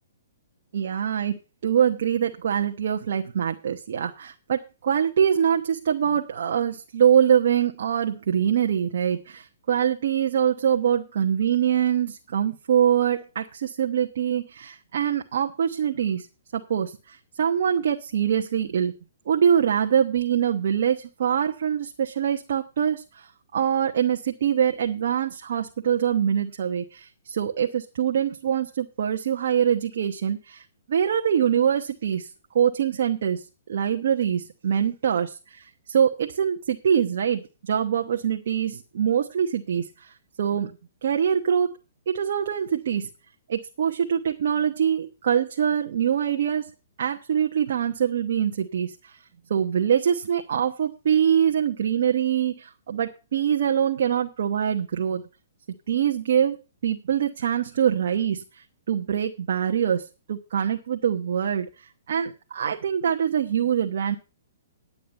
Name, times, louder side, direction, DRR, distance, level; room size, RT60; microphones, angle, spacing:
voice 1, 0.7-16.3 16.5-18.9 19.3-32.3 32.5-40.7 41.0-41.7 42.1-43.1 43.5-46.7 47.0-49.2 49.5-55.2 55.9-56.6 56.8-64.2, right 8 dB, 65° right, 2 dB, 1.1 m, -24 dB
10.5 x 8.6 x 5.3 m, 0.31 s
hypercardioid pair, 135°, 0 cm